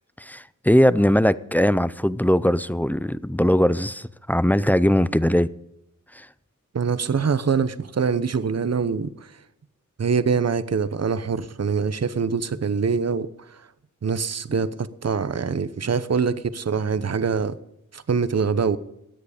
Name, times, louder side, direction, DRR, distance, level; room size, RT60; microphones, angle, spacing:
voice 1, 0.2-5.5 6.1-6.3, equal, 5° left, 0.5 m, -20 dB
voice 2, 6.7-9.3 10.0-13.3 14.0-17.6 17.9-18.8, right 5 dB, 50° right, 0.9 m, -24 dB
17.0 x 10.0 x 5.1 m
wide cardioid pair, 70°, 32 cm